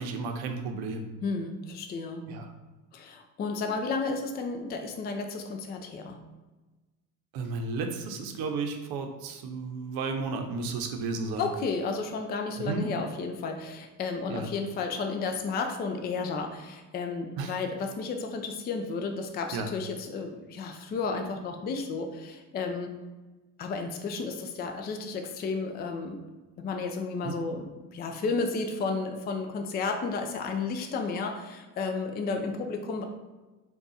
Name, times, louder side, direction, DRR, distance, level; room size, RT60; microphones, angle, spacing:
voice 1, 0.0-1.1 2.3-2.5 7.3-11.5 12.6-12.9 14.3-14.5 17.4-17.5 19.5-19.7 27.2-27.4, right 4 dB, 75° right, 5 dB, 0.7 m, -33 dB
voice 2, 1.2-2.3 2.9-6.2 11.4-22.9 23.6-26.2 26.6-33.0, left 4 dB, 25° left, 5 dB, 0.3 m, -32 dB
3.7 x 2.4 x 3.9 m, 1.2 s
cardioid pair, 110°, 38 cm